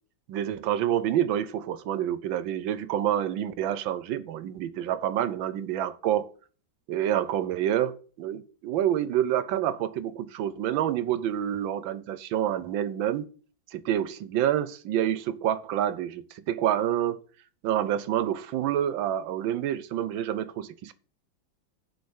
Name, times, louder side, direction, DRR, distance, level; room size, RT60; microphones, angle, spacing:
voice 1, 0.3-6.3 6.9-13.3 13.7-17.2 17.6-20.9, right 11 dB, 80° right, 1.5 m, -28 dB
7.7 x 5.0 x 7.1 m
omnidirectional pair, 2.1 m